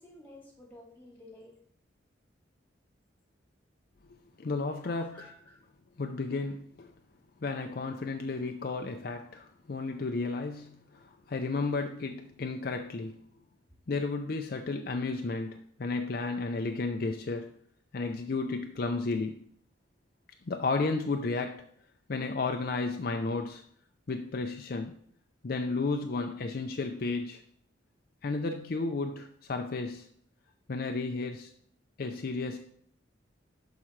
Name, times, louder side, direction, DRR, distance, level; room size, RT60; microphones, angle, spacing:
voice 1, 0.0-1.6 4.8-5.6 6.3-6.4, left 1 dB, 10° left, -2 dB, 2.5 m, -53 dB
voice 2, 4.4-5.3 6.0-6.9 7.4-13.2 13.9-17.5 17.9-19.5 20.5-21.6 22.1-23.6 24.1-24.9 25.4-27.4 28.2-30.1 30.7-31.5 32.0-32.6, left 3 dB, 50° left, 4 dB, 0.5 m, -33 dB
12.0 x 4.8 x 3.2 m, 0.63 s
head